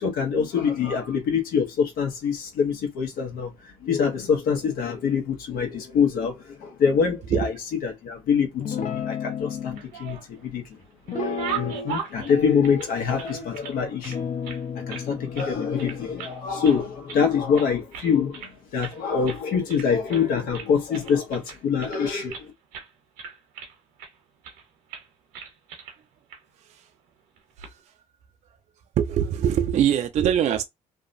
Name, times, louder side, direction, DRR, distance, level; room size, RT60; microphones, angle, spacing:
voice 1, 0.0-7.6 7.8-9.7 10.0-10.6 11.2-14.2 14.9-22.5, left 6 dB, 70° left, 1.0 m, -25 dB
Guitar, 8.6-9.8 11.1-12.0 12.3-13.5 14.1-17.5, left 6 dB, 55° left, 0.7 m, -33 dB
sound 1, 9.6-10.4 10.8-13.7 14.0-15.1 15.3-15.5 15.8-16.4 16.6-17.3 17.5-18.5 18.8-19.0 19.2-19.4 19.7-20.3 20.5-22.4 22.7-22.9 23.2-24.1 24.4-24.6 24.9-25.1 25.3-26.0 26.3-26.4 27.4-27.7, right 7 dB, 80° right, 0.8 m, -37 dB
voice 2, 29.0-30.7, right 9 dB, 50° right, 0.4 m, -23 dB
2.7 x 2.2 x 2.5 m
supercardioid pair, 70°, 15 cm